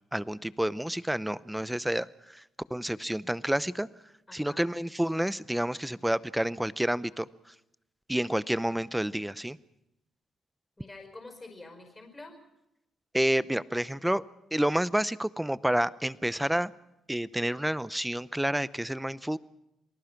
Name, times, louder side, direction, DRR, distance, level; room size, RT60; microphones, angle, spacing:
voice 1, 0.1-2.1 2.7-3.9 4.3-7.3 8.1-9.6 13.1-14.2 14.5-16.7 17.1-19.4, right 1 dB, 5° right, 17 dB, 0.7 m, -29 dB
voice 2, 4.3-4.7 10.8-12.4, left 2 dB, 15° left, 5 dB, 5.2 m, -47 dB
27.5 x 19.0 x 6.0 m, 0.88 s
cardioid pair, 90°, 0 cm